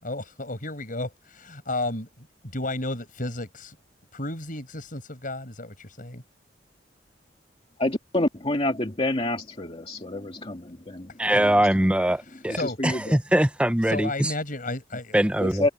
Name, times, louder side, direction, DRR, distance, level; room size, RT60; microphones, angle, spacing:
voice 1, 0.0-2.3 2.5-3.8 4.1-6.2 12.3-13.0 13.8-15.7, left 2 dB, 50° left, 6.5 m, -33 dB
voice 2, 7.8-11.6 12.5-13.2 15.4-15.7, left 1 dB, 30° left, 2.3 m, -28 dB
voice 3, 11.2-12.6 12.8-14.3 15.1-15.6, right 1 dB, 5° right, 0.9 m, -22 dB
head